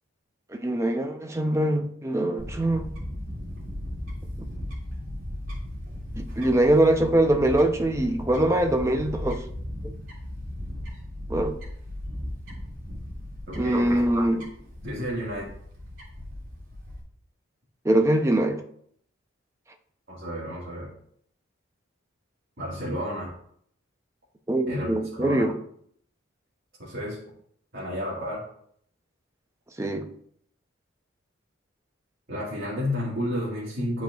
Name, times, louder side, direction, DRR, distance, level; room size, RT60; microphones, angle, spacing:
voice 1, 0.5-2.9 6.2-9.4 9.8-9.9 11.3-11.6 13.5-14.5 17.8-18.6 24.5-25.5 29.8-30.1, right 1 dB, 15° right, 5 dB, 0.5 m, -23 dB
Fowl / Bird, 2.4-17.0, left 1 dB, 75° right, 2.1 m, -37 dB
voice 2, 13.5-14.0 14.8-15.5 20.1-20.9 22.6-23.3 24.7-25.5 26.8-27.2 27.7-28.4 32.3-34.0, equal, 50° right, -6 dB, 1.6 m, -31 dB
10.5 x 4.3 x 2.3 m, 0.66 s
head